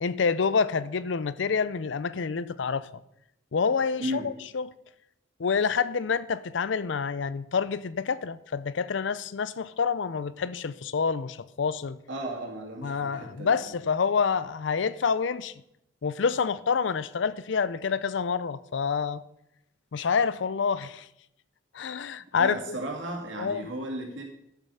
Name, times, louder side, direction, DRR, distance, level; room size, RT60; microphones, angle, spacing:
voice 1, 0.0-2.9 3.5-4.6 5.4-12.0 12.8-15.5 16.0-19.2 19.9-21.1 21.7-22.8 23.4-23.6, left 5 dB, 70° left, 0.5 m, -27 dB
voice 2, 4.0-4.3 12.1-13.6 22.3-24.2, right 1 dB, 75° right, 2.6 m, -35 dB
11.5 x 7.2 x 5.6 m
head